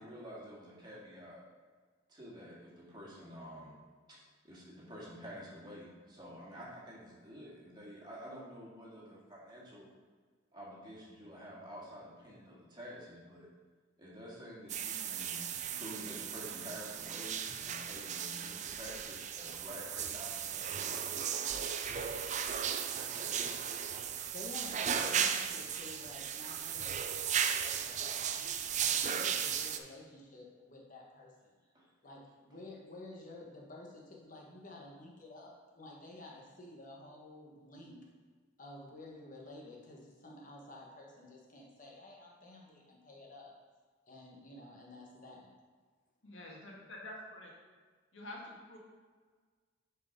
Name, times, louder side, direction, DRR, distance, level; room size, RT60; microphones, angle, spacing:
voice 1, 0.0-1.4 2.1-3.8 4.1-4.2 4.4-9.9 10.5-13.5 14.0-21.1 22.6-23.6 31.7-31.8, equal, 25° right, -6 dB, 2.1 m, -49 dB
sound 1, 14.7-29.8, right 8 dB, 40° right, 0.4 m, -36 dB
voice 2, 24.0-28.5 28.8-31.5 32.0-38.0 38.6-43.5 44.1-45.5, left 2 dB, 45° left, -2 dB, 1.4 m, -51 dB
voice 3, 46.2-47.5 48.1-48.8, left 1 dB, 90° left, -2 dB, 1.8 m, -47 dB
6.8 x 4.8 x 5.3 m, 1.5 s
head